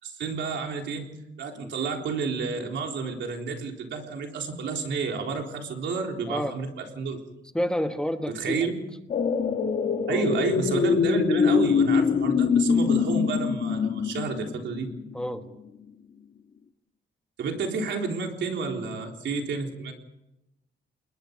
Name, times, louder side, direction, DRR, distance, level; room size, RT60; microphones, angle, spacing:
voice 1, 0.0-1.1 1.4-7.2 8.3-8.7 10.1-14.9 17.4-19.9, right 4 dB, 70° right, 2 dB, 3.9 m, -30 dB
voice 2, 7.5-8.7 10.1-10.3 15.1-15.4, equal, 5° left, 6 dB, 1.3 m, -29 dB
sound 1, 9.1-15.2 15.6-15.7, left 6 dB, 45° left, 1.9 m, -24 dB
29.5 x 20.5 x 5.3 m, 0.93 s
wide cardioid pair, 170°, 19 cm